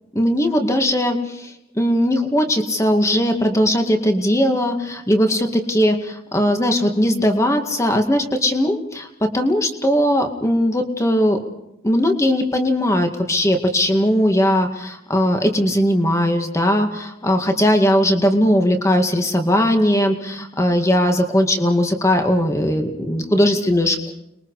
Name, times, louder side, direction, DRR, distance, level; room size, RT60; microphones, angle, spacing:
voice 1, 0.2-9.1 9.3-11.4 11.8-24.1, equal, 15° left, 5 dB, 2.2 m, -19 dB
30.0 x 22.0 x 5.0 m, 0.86 s
head